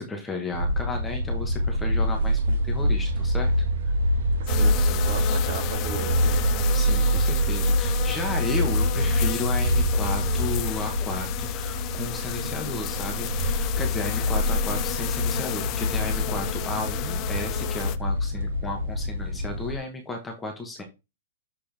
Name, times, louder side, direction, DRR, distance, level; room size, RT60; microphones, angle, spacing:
voice 1, 0.0-3.5 6.7-20.8, left 2 dB, 5° left, 1.1 m, -34 dB
sound 1, 0.5-19.8, equal, 65° right, 1.5 m, -25 dB
voice 2, 4.4-6.5, right 4 dB, 45° right, 2.1 m, -36 dB
sound 2, 4.5-18.0, left 15 dB, 25° left, 0.3 m, -33 dB
7.2 x 4.3 x 3.3 m
hypercardioid pair, 175°, 0 cm